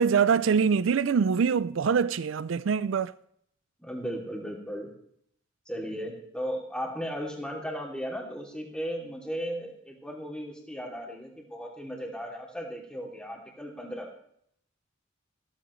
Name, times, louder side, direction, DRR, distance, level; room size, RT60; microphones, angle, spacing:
voice 1, 0.0-3.1, right 6 dB, 80° right, 0.4 m, -24 dB
voice 2, 3.8-4.9 5.7-14.1, equal, 5° left, 2.8 m, -36 dB
15.5 x 14.0 x 3.2 m
head